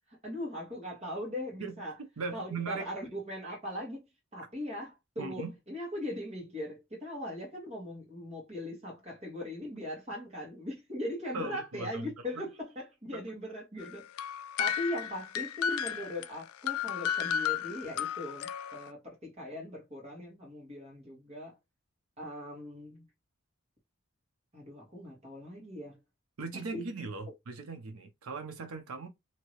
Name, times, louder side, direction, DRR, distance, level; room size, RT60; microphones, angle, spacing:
voice 1, 0.1-2.0 2.3-4.1 4.3-14.3 14.6-21.6 22.2-23.1 24.5-26.0 26.5-26.8, left 1 dB, 30° right, 1.4 m, -40 dB
voice 2, 2.2-2.9 4.4-4.5 5.2-5.5 11.3-12.1 13.1-13.2 26.4-29.1, right 4 dB, 90° right, 0.6 m, -39 dB
sound 1, 13.8-18.9, left 8 dB, 85° left, 0.3 m, -34 dB
2.9 x 2.7 x 3.0 m
head